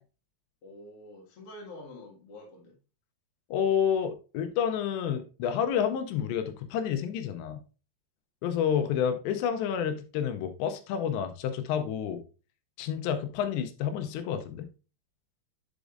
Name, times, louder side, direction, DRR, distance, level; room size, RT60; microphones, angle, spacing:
voice 1, 0.6-2.8 8.7-8.9, left 1 dB, 45° left, 2.0 m, -47 dB
voice 2, 3.5-7.6 8.4-12.2 12.8-14.7, left 8 dB, 85° left, 2.8 m, -29 dB
9.8 x 5.1 x 2.5 m
omnidirectional pair, 5.1 m